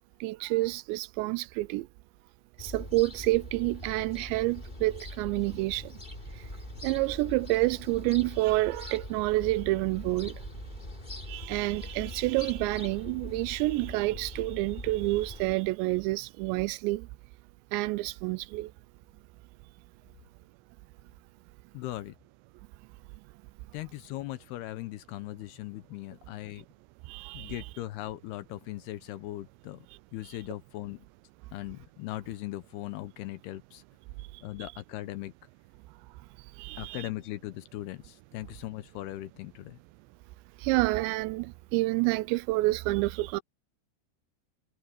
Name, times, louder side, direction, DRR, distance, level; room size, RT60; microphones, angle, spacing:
voice 1, 0.2-1.9 2.6-6.0 6.3-6.5 6.8-10.4 11.3-17.1 17.7-18.7 27.0-27.6 34.3-34.4 36.6-37.1 40.6-43.4, right 20 dB, 90° right, 2.9 m, -29 dB
sound 1, 2.6-15.6, left 1 dB, 10° left, 3.2 m, -42 dB
voice 2, 21.7-22.1 23.7-26.7 27.3-29.9 30.1-31.1 31.5-33.8 34.4-35.3 36.8-39.8, left 16 dB, 75° left, 2.7 m, -39 dB
omnidirectional pair, 5.0 m